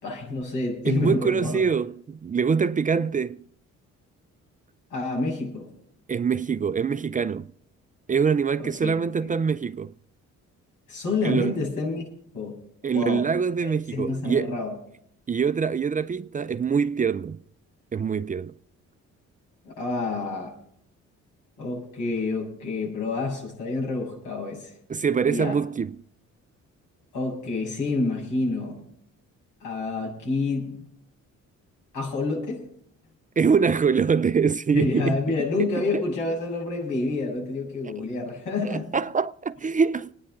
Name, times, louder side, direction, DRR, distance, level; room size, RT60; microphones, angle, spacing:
voice 1, 0.0-1.6 4.9-5.7 8.6-8.9 9.2-9.3 10.9-12.0 12.3-12.6 12.9-13.3 13.6-14.7 19.6-20.5 21.6-24.8 25.3-25.6 27.1-28.8 29.6-30.8 31.9-32.7 34.7-38.9, left 3 dB, 85° left, 7.5 m, -28 dB
voice 2, 0.8-3.4 6.1-7.5 8.1-9.9 11.2-11.5 12.8-14.5 15.3-17.4 17.9-18.5 24.9-26.0 33.4-35.2 35.9-36.0 38.6-40.1, right 6 dB, 25° right, 0.4 m, -24 dB
26.5 x 9.7 x 3.8 m
cardioid pair, 90°, 30 cm